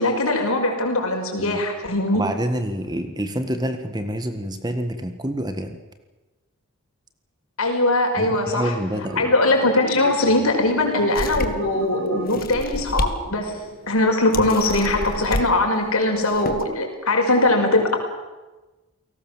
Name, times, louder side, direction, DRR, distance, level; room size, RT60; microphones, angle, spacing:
voice 1, 0.0-2.2 7.6-8.7 9.2-13.5 13.9-18.0, left 2 dB, 75° left, 3 dB, 5.5 m, -21 dB
voice 2, 2.1-5.8 8.2-9.3, equal, 20° right, 7 dB, 1.7 m, -27 dB
sound 1, 8.9-15.7, right 1 dB, 60° right, 3.8 m, -37 dB
sound 2, 11.2-11.7 12.3-13.2 13.6-13.7 14.3-15.5 16.2-16.6, left 1 dB, 40° left, 1.8 m, -29 dB
29.5 x 18.5 x 7.5 m, 1.2 s
head